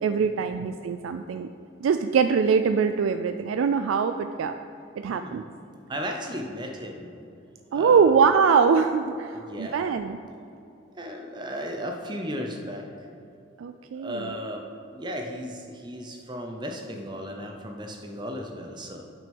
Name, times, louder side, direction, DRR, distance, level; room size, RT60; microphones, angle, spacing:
voice 1, 0.0-1.5 1.8-4.5 5.0-5.4 7.7-10.2 13.6-14.3, right 6 dB, 90° right, 8 dB, 0.3 m, -23 dB
voice 2, 5.1-5.4 5.9-7.1 7.7-8.0 9.3-9.9 11.0-12.9 13.9-14.6 14.9-19.0, equal, 20° right, 2 dB, 0.6 m, -35 dB
8.5 x 6.2 x 5.3 m, 2.7 s
head